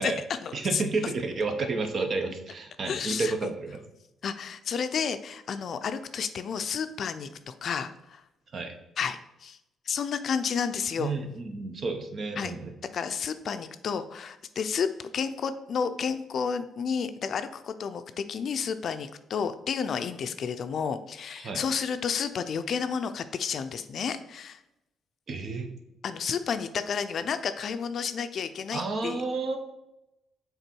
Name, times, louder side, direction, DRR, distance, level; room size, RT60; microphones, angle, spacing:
voice 1, 0.0-0.8 2.8-3.5 4.2-8.2 9.0-9.6 9.9-11.1 12.4-12.5 12.9-14.9 15.1-24.6 26.0-29.2, left 6 dB, 60° left, 10 dB, 0.5 m, -31 dB
voice 2, 0.5-3.8 8.5-8.7 11.0-12.7 21.4-21.6 25.3-25.7 28.7-29.6, right 3 dB, 50° right, 5 dB, 1.0 m, -31 dB
6.7 x 4.0 x 4.5 m, 0.90 s
cardioid pair, 90°, 0 cm